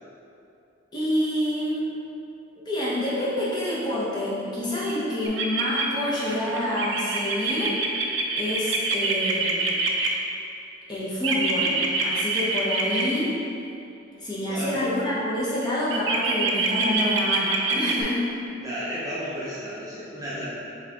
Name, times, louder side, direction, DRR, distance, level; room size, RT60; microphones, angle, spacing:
voice 1, 0.9-1.9 2.6-7.8 8.4-9.8 10.9-13.3 14.2-18.3, left 1 dB, 20° left, -8 dB, 0.8 m, -27 dB
sound 1, 5.3-10.1 11.2-13.0 15.9-18.0, right 4 dB, 60° right, 0.4 m, -25 dB
voice 2, 14.5-14.8 18.6-20.5, equal, 15° right, -9 dB, 0.6 m, -33 dB
4.6 x 2.9 x 3.5 m, 2.7 s
head